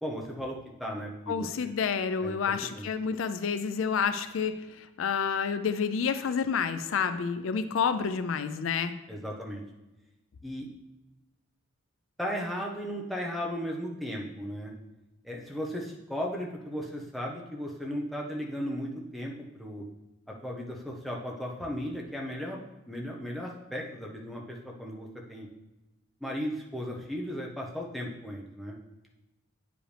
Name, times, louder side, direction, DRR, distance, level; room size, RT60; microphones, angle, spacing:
voice 1, 0.0-1.7 2.2-2.9 9.1-9.6 10.4-10.7 12.2-14.7 15.2-19.8 20.4-22.6 22.9-25.5 26.2-28.8, equal, ahead, -2 dB, 0.8 m, -36 dB
voice 2, 1.3-8.9, left 6 dB, 70° left, 11 dB, 0.4 m, -29 dB
8.8 x 5.1 x 3.3 m, 0.99 s
head